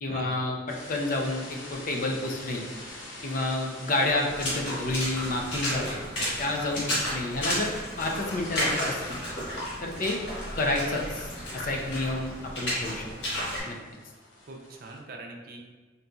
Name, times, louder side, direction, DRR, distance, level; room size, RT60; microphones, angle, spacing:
voice 1, 0.0-2.7 3.2-7.7 8.0-9.2 9.8-10.2 10.5-13.1 13.6-13.8, left 2 dB, 45° left, 1 dB, 0.5 m, -30 dB
sound 1, 0.7-15.0, left 2 dB, 85° left, 0.7 m, -47 dB
Water / Splash splatter, 4.3-13.6, left 1 dB, 65° left, 1.3 m, -32 dB
voice 2, 4.7-5.0 6.8-7.0 14.5-15.6, right 2 dB, 50° right, 1 dB, 0.5 m, -42 dB
4.0 x 3.8 x 2.3 m, 1.3 s
head